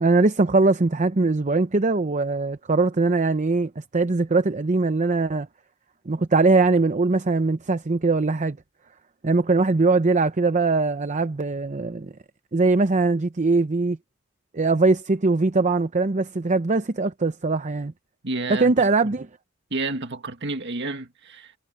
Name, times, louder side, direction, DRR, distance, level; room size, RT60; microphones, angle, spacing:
voice 1, 0.0-5.5 6.1-8.6 9.2-12.1 12.5-14.0 14.5-17.9 18.6-19.2, right 3 dB, 35° right, 0.7 m, -21 dB
voice 2, 18.2-19.1 19.7-21.6, right 2 dB, 60° right, 1.9 m, -30 dB
head